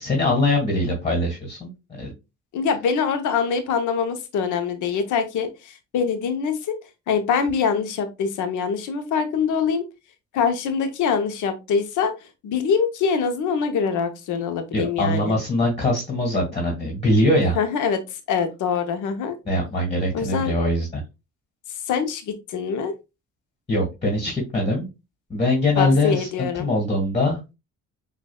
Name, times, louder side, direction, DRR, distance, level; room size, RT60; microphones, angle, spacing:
voice 1, 0.0-2.1 14.7-17.6 19.5-21.0 23.7-24.9 25.3-27.4, left 1 dB, 20° left, -1 dB, 1.9 m, -22 dB
voice 2, 2.5-6.7 7.1-9.8 10.3-12.1 12.4-15.4 17.6-18.0 18.3-19.4 20.1-20.5 21.9-22.9 25.8-26.7, left 6 dB, 80° left, 8 dB, 0.9 m, -24 dB
6.3 x 2.6 x 2.3 m, 0.25 s
cardioid pair, 90°, 30 cm